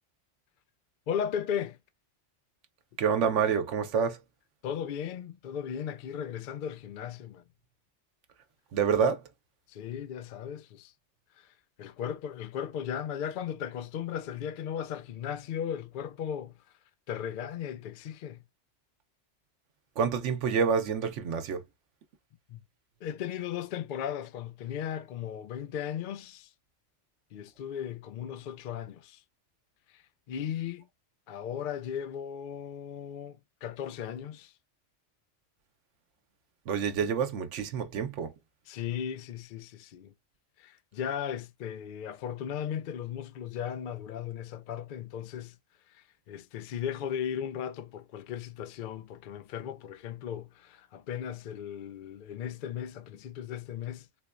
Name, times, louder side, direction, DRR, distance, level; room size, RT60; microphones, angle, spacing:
voice 1, 1.1-1.8 4.6-7.4 9.7-10.9 11.4-11.5 11.8-16.6 17.1-18.4 22.5-22.6 23.0-26.5 27.3-29.2 29.9-30.0 30.3-30.9 31.3-34.5 38.7-40.1 40.6-45.6 45.9-54.2, left 9 dB, 55° left, 0.6 m, -36 dB
voice 2, 3.0-4.2 8.7-9.2 20.0-21.6 36.7-38.3, right 6 dB, 80° right, 1.0 m, -27 dB
4.4 x 2.2 x 2.4 m
omnidirectional pair, 1.2 m